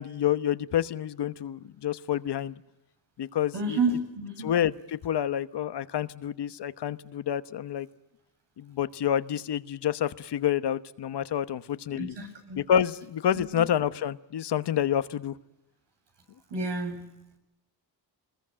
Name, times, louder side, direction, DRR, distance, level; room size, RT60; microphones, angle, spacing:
voice 1, 0.0-2.5 3.2-3.8 4.4-7.9 8.6-12.2 12.6-15.3, left 10 dB, 70° left, 13 dB, 1.2 m, -28 dB
voice 2, 3.5-4.5 11.9-12.6 13.3-13.4 16.5-17.1, right 3 dB, 75° right, 5 dB, 7.8 m, -30 dB
26.0 x 21.0 x 8.9 m, 0.90 s
wide cardioid pair, 135°, 42 cm